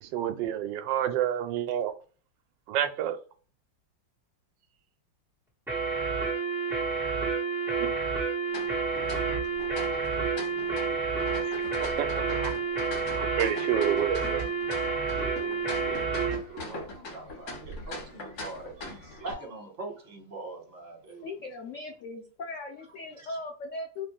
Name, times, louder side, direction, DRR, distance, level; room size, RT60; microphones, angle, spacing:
voice 1, 0.0-1.9 2.7-3.2 7.8-8.0 11.4-12.5 13.1-14.4, right 10 dB, 75° right, 1.2 m, -30 dB
sound 1, 5.7-16.4, right 4 dB, ahead, 1.3 m, -29 dB
sound 2, 8.5-19.3, left 2 dB, 60° left, 1.6 m, -41 dB
voice 2, 15.1-16.1 16.5-21.3 23.2-23.4, right 3 dB, 45° right, 1.5 m, -43 dB
voice 3, 21.2-24.1, left 2 dB, 80° left, 0.6 m, -38 dB
3.1 x 2.5 x 3.7 m
omnidirectional pair, 2.1 m